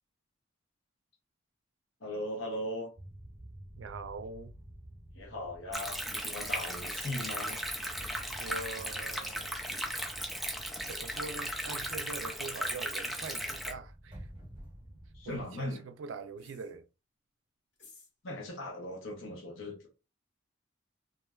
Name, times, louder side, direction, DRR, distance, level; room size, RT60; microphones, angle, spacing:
voice 1, 2.0-2.9 5.1-7.6 15.1-15.9 18.2-19.9, left 1 dB, 80° left, 0.8 m, -39 dB
sound 1, 3.0-15.4, equal, 25° right, 0.9 m, -50 dB
voice 2, 3.8-4.5 8.4-9.6 10.9-14.3 15.3-16.8, right 4 dB, 75° right, 0.4 m, -43 dB
Stream, 5.7-13.7, equal, ahead, 0.4 m, -36 dB
sound 2, 8.5-8.8 9.7-10.0 10.9-11.2 12.2-12.5 13.5-13.8 16.4-16.7 17.7-18.1, left 2 dB, 60° left, 1.4 m, -57 dB
3.1 x 2.4 x 2.3 m
head